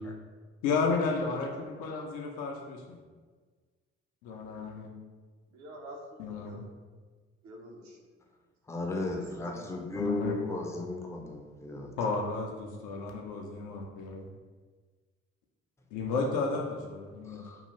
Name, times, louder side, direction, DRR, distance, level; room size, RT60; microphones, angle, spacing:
voice 1, 0.6-3.0 4.2-4.9 6.2-6.6 10.0-10.4 12.0-14.3 15.9-17.4, left 4 dB, 60° left, 0 dB, 0.5 m, -32 dB
voice 2, 5.5-6.6 7.4-8.0 9.1-9.7, equal, 55° right, 0 dB, 0.7 m, -47 dB
voice 3, 8.7-11.9 17.4-17.6, left 2 dB, 10° left, 1 dB, 0.5 m, -35 dB
2.6 x 2.4 x 3.0 m, 1.4 s
figure-of-eight pair, 45°, 35 cm